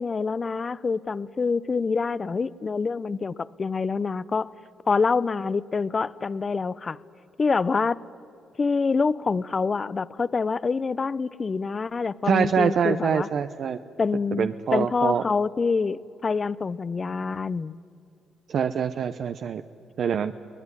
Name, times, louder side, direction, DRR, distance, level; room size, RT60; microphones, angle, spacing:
voice 1, 0.0-4.5 4.9-7.0 7.4-8.0 8.6-13.3 14.0-17.8, left 4 dB, 35° left, 19 dB, 0.6 m, -26 dB
voice 2, 12.3-13.8 14.4-15.2 18.5-19.6 20.0-20.3, right 7 dB, 60° right, 10 dB, 0.7 m, -24 dB
23.5 x 18.0 x 9.7 m, 2.5 s
cardioid pair, 90°, 0 cm